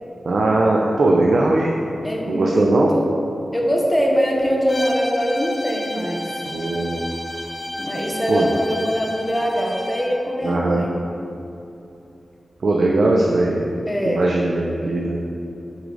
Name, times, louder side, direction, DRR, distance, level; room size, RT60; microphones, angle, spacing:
voice 1, 0.2-1.8 2.2-2.9 6.5-7.1 8.3-8.5 10.4-10.9 12.6-13.6 14.0-15.2, right 2 dB, 70° right, -2 dB, 0.6 m, -19 dB
voice 2, 2.0-2.7 2.9-3.1 3.5-6.2 7.8-10.9 13.9-14.2, equal, 5° left, -2 dB, 1.0 m, -22 dB
Bowed string instrument, 4.7-10.1, left 1 dB, 30° left, 1.3 m, -32 dB
8.0 x 4.9 x 4.0 m, 2.8 s
wide cardioid pair, 120°, 0 cm